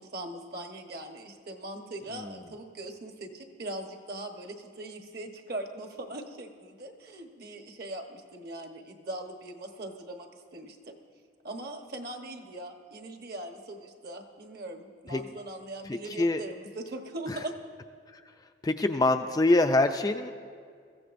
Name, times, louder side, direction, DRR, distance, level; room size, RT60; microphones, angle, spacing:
voice 1, 0.0-11.0 11.4-17.5, right 1 dB, 50° right, 4 dB, 1.1 m, -40 dB
voice 2, 18.6-20.3, left 2 dB, 20° left, 6 dB, 0.3 m, -24 dB
22.0 x 15.0 x 2.6 m, 2.1 s
head